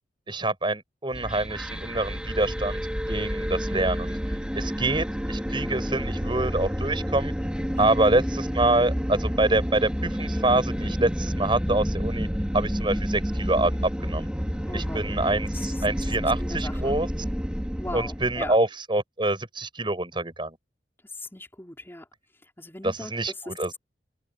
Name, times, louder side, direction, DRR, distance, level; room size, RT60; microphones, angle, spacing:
voice 1, 0.3-2.8 3.1-4.2 4.6-7.3 7.8-12.3 12.5-14.3 14.7-17.1 17.9-20.6 22.8-23.8, right 2 dB, 30° right, 6.3 m, -26 dB
sound 1, 1.1-18.5, equal, 5° right, 4.2 m, -29 dB
voice 2, 14.7-17.0 17.8-18.5 21.0-22.1 22.4-23.5, left 1 dB, 15° left, 5.2 m, -39 dB
open air
head